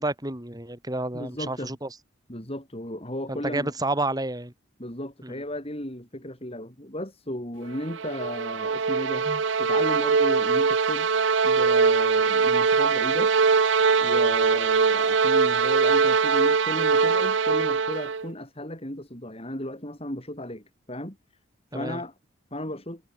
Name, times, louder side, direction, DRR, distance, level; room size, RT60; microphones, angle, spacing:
voice 1, 0.0-1.9 3.3-4.5 5.2-5.3 21.7-22.0, right 2 dB, 20° right, 3.9 m, -30 dB
voice 2, 1.1-1.7 2.3-3.7 4.8-11.1 11.4-13.3 14.0-21.2 21.7-22.1 22.5-23.0, left 1 dB, 30° left, 7.7 m, -35 dB
sound 1, 7.7-18.3, right 5 dB, 70° right, 0.7 m, -22 dB
head